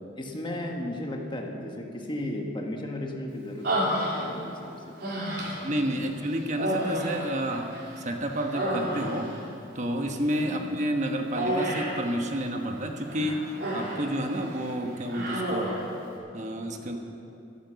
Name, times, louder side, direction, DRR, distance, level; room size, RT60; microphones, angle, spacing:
voice 1, 0.2-4.7 5.9-6.1 10.4-10.7, left 1 dB, 25° left, 1 dB, 1.5 m, -35 dB
Human voice, 3.6-4.5 5.0-5.7 6.5-8.0 8.3-9.4 11.4-12.0 13.1-14.1 14.4-14.7 15.1-15.9, right 1 dB, 60° right, 3.6 m, -30 dB
voice 2, 5.6-9.3 9.7-13.4 13.7-15.7 16.3-17.0, equal, 40° right, 3 dB, 1.2 m, -30 dB
13.5 x 13.0 x 7.0 m, 2.7 s
head